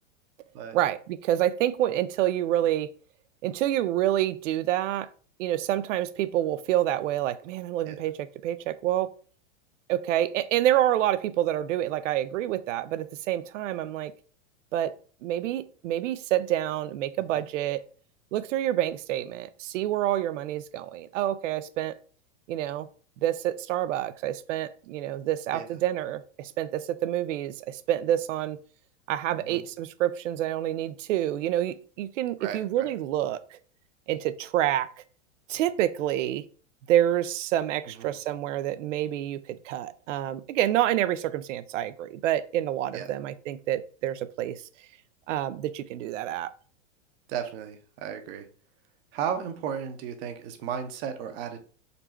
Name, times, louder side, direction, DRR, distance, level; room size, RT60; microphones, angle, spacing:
voice 1, 0.7-2.9 3.4-5.1 5.4-9.1 9.9-14.1 14.7-14.9 15.2-17.8 18.3-22.0 22.5-22.9 23.2-28.6 29.1-33.6 34.1-34.9 35.5-36.4 36.9-44.6 45.3-46.5, right 12 dB, 75° right, 0.5 m, -27 dB
voice 2, 29.3-29.7 32.4-32.9 37.9-38.2 42.9-43.1 47.3-48.5 49.1-51.6, right 8 dB, 50° right, 0.8 m, -34 dB
3.9 x 2.2 x 4.3 m
hypercardioid pair, 125°, 38 cm